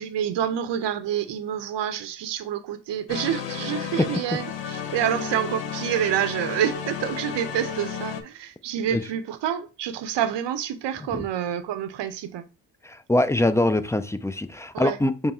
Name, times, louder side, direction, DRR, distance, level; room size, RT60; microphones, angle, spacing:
voice 1, 0.0-12.5 14.7-15.0, right 10 dB, 75° right, 0.6 m, -28 dB
sound 1, 3.1-8.2, left 7 dB, 75° left, 0.8 m, -32 dB
voice 2, 12.8-15.3, left 1 dB, 10° left, 0.3 m, -23 dB
5.4 x 2.0 x 4.2 m
cardioid pair, 70°, 43 cm